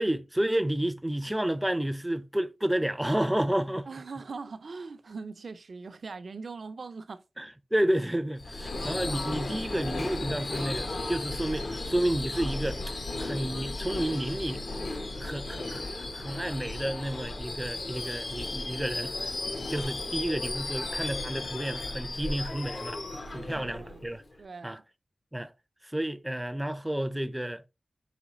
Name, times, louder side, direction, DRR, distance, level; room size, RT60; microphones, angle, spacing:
voice 1, 0.0-3.9 7.4-12.8 13.2-14.6 15.1-19.1 19.7-24.2 24.6-24.8 25.3-25.5 25.8-27.6, right 1 dB, 10° right, 0.4 m, -31 dB
voice 2, 3.9-7.2 23.5-24.0 24.4-24.8, right 4 dB, 75° right, 0.5 m, -41 dB
Subway metro underground / Screech, 8.4-24.3, left 2 dB, 65° left, 0.8 m, -35 dB
4.9 x 3.2 x 3.0 m
wide cardioid pair, 65°, 0 cm